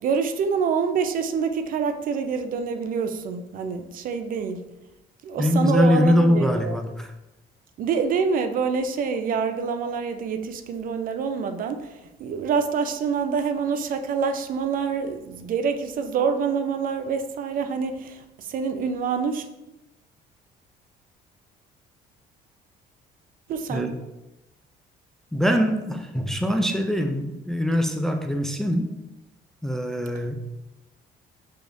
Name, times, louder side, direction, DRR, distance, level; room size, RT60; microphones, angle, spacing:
voice 1, 0.0-4.6 5.2-6.8 7.8-11.9 12.2-19.5 23.5-23.9, right 6 dB, 55° right, 0.5 m, -26 dB
voice 2, 5.4-7.1 23.7-24.0 25.3-28.9 29.6-30.3, left 1 dB, 5° left, 0.3 m, -23 dB
5.9 x 3.4 x 2.6 m
cardioid pair, 110°, 17 cm